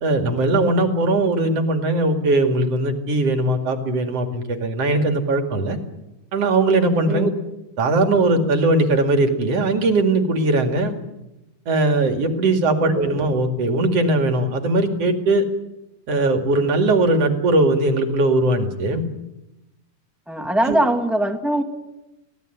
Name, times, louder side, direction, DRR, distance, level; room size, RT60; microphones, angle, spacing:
voice 1, 0.0-5.8 6.3-7.3 7.8-10.9 11.7-15.4 16.1-19.1 20.7-20.8, right 2 dB, 50° right, 5 dB, 3.0 m, -19 dB
voice 2, 12.8-13.1 20.3-21.6, right 1 dB, ahead, 4 dB, 1.2 m, -22 dB
25.0 x 17.5 x 9.2 m, 0.95 s
omnidirectional pair, 3.8 m